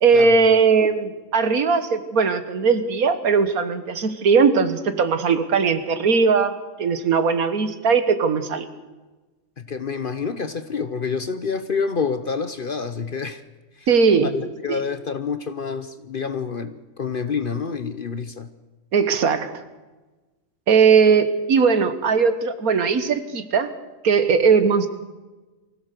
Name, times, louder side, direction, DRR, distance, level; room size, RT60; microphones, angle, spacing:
voice 1, 0.0-8.7 13.9-14.3 14.7-14.8 18.9-19.5 20.7-23.7 24.0-24.9, right 5 dB, 80° right, 1.7 m, -19 dB
voice 2, 9.6-13.4 13.8-13.9 14.2-18.5, left 5 dB, 45° left, 0.8 m, -28 dB
24.0 x 16.0 x 6.7 m
omnidirectional pair, 1.5 m